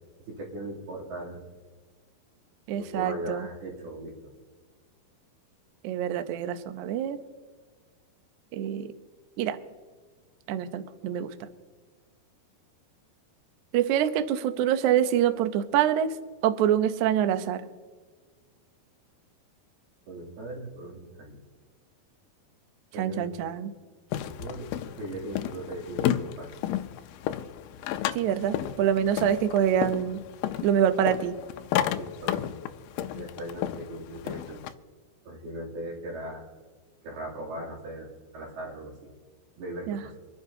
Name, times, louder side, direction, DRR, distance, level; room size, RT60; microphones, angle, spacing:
voice 1, 0.3-1.4 2.8-4.3 20.1-21.4 22.9-23.3 24.3-26.5 31.9-32.6 33.1-34.6 35.2-36.4 37.0-38.1 38.3-38.9 39.6-40.2, right 1 dB, 70° right, -4 dB, 4.8 m, -38 dB
voice 2, 2.7-3.5 5.8-7.2 8.5-8.9 9.4-9.6 10.5-11.3 13.7-16.1 16.4-17.6 23.0-23.7 28.1-30.2 30.6-31.3 39.9-40.0, right 10 dB, 90° right, 9 dB, 1.7 m, -25 dB
sound 1, 24.1-34.7, left 11 dB, 80° left, 2.1 m, -32 dB
26.5 x 11.0 x 2.8 m, 1.5 s
omnidirectional pair, 4.6 m